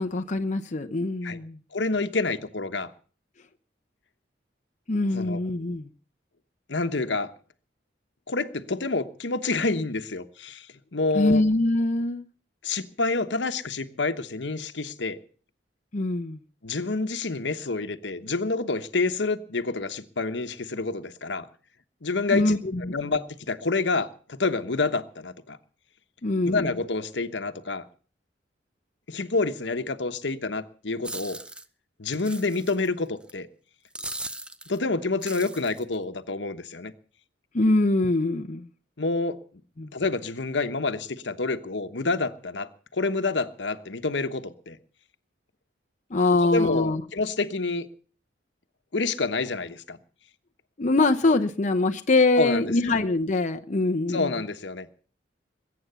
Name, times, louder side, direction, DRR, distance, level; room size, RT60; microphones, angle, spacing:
voice 1, 0.0-1.6 4.9-5.9 11.1-12.3 15.9-16.4 22.3-22.9 26.2-26.8 37.5-38.7 39.8-39.9 46.1-47.0 50.8-54.3, left 2 dB, 45° left, 0.8 m, -23 dB
voice 2, 1.7-2.9 5.1-5.4 6.7-7.3 8.3-10.7 10.9-11.4 12.6-15.2 16.6-21.5 22.0-22.6 22.9-25.6 26.5-27.8 29.1-31.4 32.0-33.5 34.7-36.9 39.0-39.4 39.9-44.8 46.4-47.9 48.9-50.0 52.4-52.6 54.1-54.9, left 3 dB, 75° left, 1.2 m, -28 dB
sound 1, 31.0-31.6 32.1-32.9 33.3-33.4 33.9-34.8 35.2-35.9, right 1 dB, 5° right, 0.7 m, -38 dB
21.5 x 8.7 x 6.9 m
head